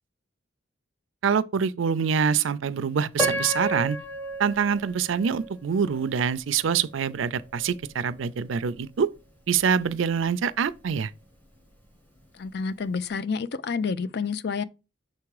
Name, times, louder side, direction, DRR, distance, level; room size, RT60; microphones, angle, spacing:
voice 1, 1.2-4.0 4.4-9.1 9.5-11.1, right 6 dB, 85° right, 0.4 m, -25 dB
Piano, 3.2-6.2 6.8-6.9 7.5-7.7, equal, 10° left, 1.1 m, -32 dB
voice 2, 12.3-14.6, left 5 dB, 55° left, 0.4 m, -29 dB
6.5 x 3.5 x 4.8 m
head